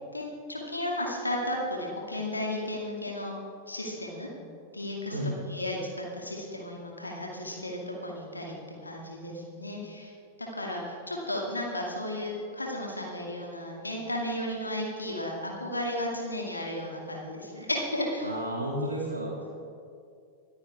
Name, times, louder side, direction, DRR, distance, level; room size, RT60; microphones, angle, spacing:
voice 1, 0.1-3.3 3.7-4.3 4.7-5.2 5.5-10.1 10.4-18.3, left 1 dB, 80° left, -1 dB, 2.2 m, -34 dB
voice 2, 5.1-5.4 17.5-17.7 18.2-19.5, right 1 dB, 85° right, -5 dB, 2.1 m, -33 dB
24.5 x 9.6 x 3.5 m, 2.3 s
figure-of-eight pair, 90°, 0 cm